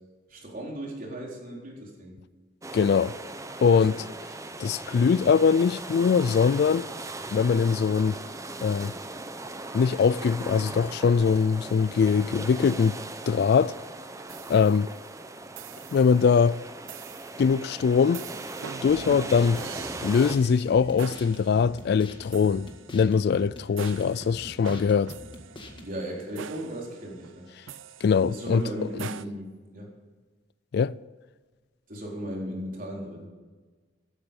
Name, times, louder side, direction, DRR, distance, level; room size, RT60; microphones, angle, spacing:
voice 1, 0.3-2.2 3.6-4.0 25.8-27.5 28.3-29.9 31.9-33.3, right 1 dB, 45° right, 4.2 m, -36 dB
sound 1, 2.6-20.4, right 2 dB, 15° right, 0.8 m, -39 dB
voice 2, 2.7-3.1 3.6-3.9 4.6-6.9 7.3-8.2 8.6-8.9 9.7-13.0 13.3-13.8 14.5-14.9 15.9-16.6 17.4-18.2 18.8-19.6 20.0-25.1 28.0-28.6 30.7-30.9, left 6 dB, 55° left, 0.3 m, -22 dB
sound 2, 14.3-15.1 15.6-16.2 16.9-17.5 18.1-29.2, right 7 dB, 90° right, 0.5 m, -44 dB
sound 3, 18.9-25.9, left 1 dB, 25° left, 1.8 m, -44 dB
14.5 x 12.5 x 5.4 m
head